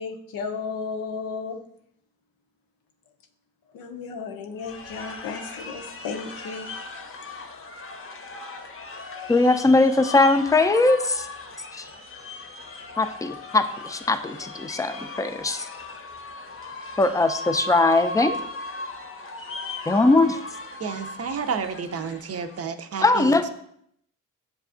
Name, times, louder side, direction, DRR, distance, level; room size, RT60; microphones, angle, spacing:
voice 1, 0.0-1.6 3.7-6.7 7.5-7.8, left 5 dB, 90° left, 0.6 m, -34 dB
sound 1, 4.6-22.6, left 2 dB, 40° left, 0.7 m, -37 dB
voice 2, 9.3-11.3 11.7-11.9 13.0-15.7 17.0-18.4 19.9-20.4 23.0-23.5, left 2 dB, 10° left, 0.4 m, -20 dB
voice 3, 20.8-23.5, right 6 dB, 45° right, 0.5 m, -31 dB
6.9 x 2.3 x 2.4 m
supercardioid pair, 45°, 34 cm